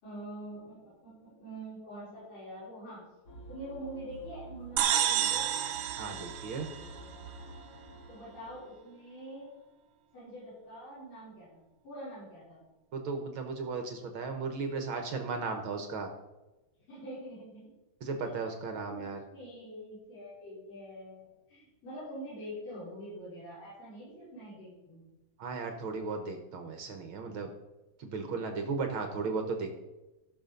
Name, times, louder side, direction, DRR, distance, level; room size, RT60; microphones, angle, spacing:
voice 1, 0.0-3.0 3.5-5.4 8.1-9.5 10.1-12.6 16.9-17.6 18.2-18.5 18.8-19.1 19.3-25.0, equal, 80° left, -12 dB, 7.0 m, -45 dB
sound 1, 3.3-8.6, right 2 dB, 50° left, 2.8 m, -49 dB
sound 2, 4.8-7.4, right 10 dB, 85° right, 2.6 m, -30 dB
voice 2, 6.0-6.7 12.9-16.1 18.0-19.2 25.4-27.5 28.0-29.7, right 4 dB, 60° right, 5 dB, 1.4 m, -35 dB
16.0 x 6.6 x 5.3 m, 1.0 s
omnidirectional pair, 3.8 m